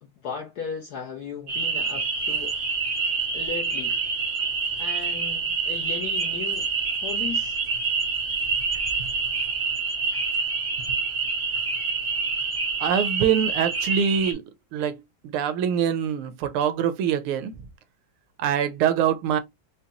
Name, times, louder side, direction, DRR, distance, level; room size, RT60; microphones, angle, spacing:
voice 1, 0.0-3.0 3.3-4.0 4.8-6.7 7.0-7.6, left 6 dB, 70° left, 0.9 m, -36 dB
sound 1, 1.5-14.3, right 4 dB, 45° right, 0.7 m, -27 dB
voice 2, 12.8-14.4 14.7-15.0 15.2-17.5 18.4-19.4, right 8 dB, 80° right, 1.4 m, -24 dB
5.1 x 2.2 x 2.8 m
omnidirectional pair, 2.4 m